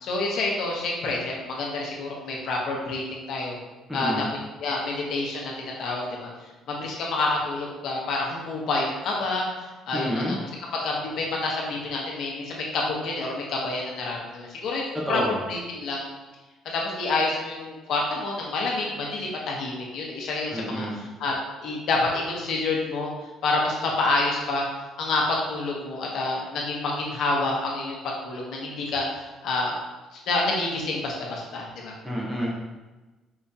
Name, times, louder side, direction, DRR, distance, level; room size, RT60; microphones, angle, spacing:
voice 1, 0.0-3.6 3.9-4.3 4.6-5.5 5.8-6.3 6.7-9.5 9.9-10.4 10.7-15.2 15.5-16.1 16.7-20.9 21.2-23.1 23.4-24.7 25.0-29.1 29.4-29.7 30.1-31.9, left 2 dB, 55° left, -2 dB, 0.9 m, -28 dB
voice 2, 3.9-4.2 9.9-10.4 15.1-15.4 20.5-21.1 32.0-32.5, equal, ahead, -5 dB, 0.7 m, -29 dB
4.8 x 3.5 x 2.8 m, 1.2 s
cardioid pair, 180°, 0 cm